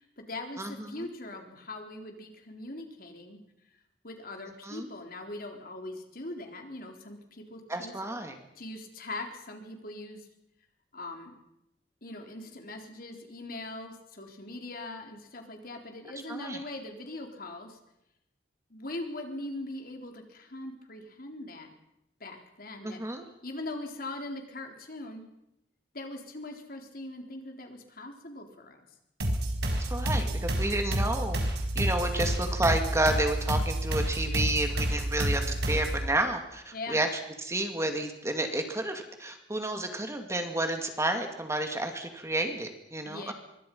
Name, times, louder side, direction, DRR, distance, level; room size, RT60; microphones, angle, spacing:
voice 1, 0.0-3.4 4.0-8.0 8.6-10.3 10.9-11.4 12.0-17.8 18.7-21.7 22.2-23.0 23.4-25.2 25.9-28.8 36.7-37.0 43.0-43.3, left 2 dB, 55° left, 3 dB, 4.1 m, -41 dB
voice 2, 0.6-1.1 4.6-4.9 7.7-8.4 16.3-16.6 22.8-23.3 29.7-31.4 31.7-37.1 37.4-43.3, right 1 dB, 15° right, 5 dB, 2.4 m, -31 dB
sound 1, 29.2-36.1, right 1 dB, 70° right, 4.9 m, -29 dB
25.5 x 24.0 x 5.6 m, 0.84 s
head